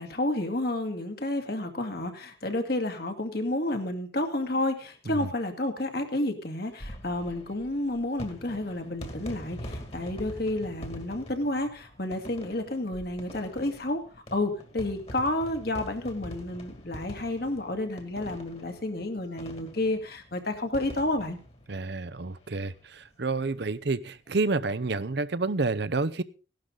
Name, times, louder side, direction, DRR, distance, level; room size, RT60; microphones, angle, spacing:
voice 1, 0.0-14.0 14.3-21.4, left 1 dB, 50° left, 6 dB, 2.2 m, -30 dB
sound 1, 6.7-22.7 23.0-23.1 23.3-23.4 24.7-24.9, equal, 30° left, 2.2 m, -44 dB
voice 2, 21.7-26.2, right 3 dB, 60° right, 15 dB, 0.7 m, -29 dB
16.5 x 12.0 x 3.9 m, 0.37 s
head